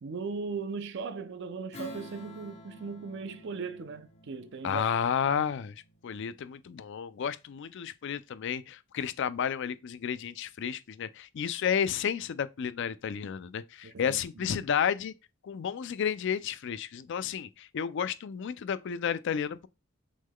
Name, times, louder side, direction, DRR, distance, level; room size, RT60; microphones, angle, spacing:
voice 1, 0.0-4.9 5.2-5.5 13.8-14.6, right 4 dB, 55° right, 0.5 m, -38 dB
Strum, 1.7-6.6, left 2 dB, 30° left, 1.0 m, -49 dB
voice 2, 4.6-5.7 6.0-15.1 15.4-19.7, left 7 dB, 60° left, 0.4 m, -32 dB
6.1 x 3.7 x 2.2 m
head